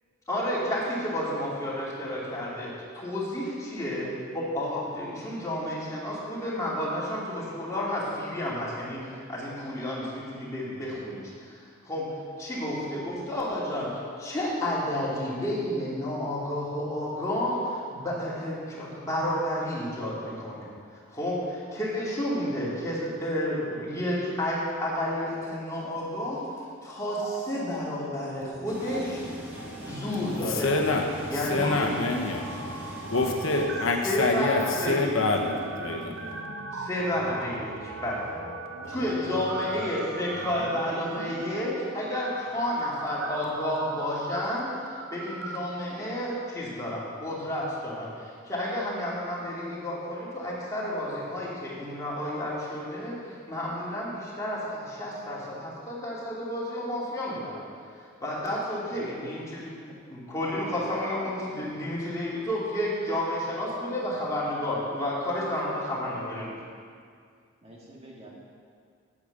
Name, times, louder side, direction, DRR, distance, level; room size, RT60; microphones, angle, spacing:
voice 1, 0.3-12.1 12.4-26.4 26.8-29.2 29.8-30.7 31.3-31.9 34.0-35.1 36.7-38.3 38.9-57.6 58.2-59.8 60.1-66.5, left 1 dB, 15° left, -7 dB, 2.5 m, -31 dB
sound 1, 27.1-28.5 28.7-29.0 29.5-45.6, right 3 dB, 80° right, 0.9 m, -40 dB
sound 2, 28.7-33.7, equal, 10° right, 1.7 m, -41 dB
voice 2, 30.4-36.4, left 2 dB, 70° left, 1 dB, 1.1 m, -27 dB
voice 3, 37.9-40.5 58.9-59.6 60.2-60.9 61.2-61.3 65.9-66.8 67.6-68.3, right 1 dB, 30° right, -4 dB, 1.9 m, -47 dB
8.6 x 8.6 x 6.6 m, 2.2 s
head